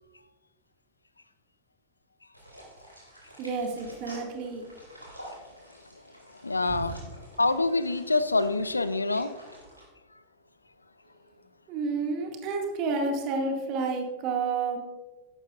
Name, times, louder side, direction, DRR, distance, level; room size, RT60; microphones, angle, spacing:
sound 1, 2.3-9.8, equal, 90° right, 2.9 m, -49 dB
voice 1, 3.4-4.6 6.6-6.9 11.7-14.8, right 4 dB, 40° right, 2 dB, 2.1 m, -30 dB
voice 2, 6.4-7.0 7.4-9.4, left 3 dB, 80° left, 14 dB, 0.5 m, -26 dB
14.0 x 11.0 x 2.5 m, 1.2 s
figure-of-eight pair, 90°, 0 cm